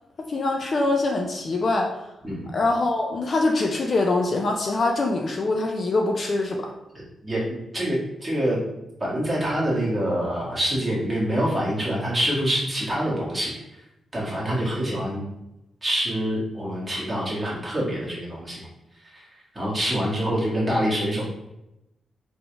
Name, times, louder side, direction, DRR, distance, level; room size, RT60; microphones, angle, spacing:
voice 1, 0.2-2.0 2.5-6.7, left 2 dB, 40° left, 2 dB, 0.5 m, -24 dB
voice 2, 7.2-8.6 9.0-13.5 14.1-15.2 15.8-18.7 19.0-21.2, equal, 15° right, -6 dB, 1.6 m, -26 dB
4.1 x 3.5 x 3.3 m, 0.91 s
wide cardioid pair, 140°, 0 cm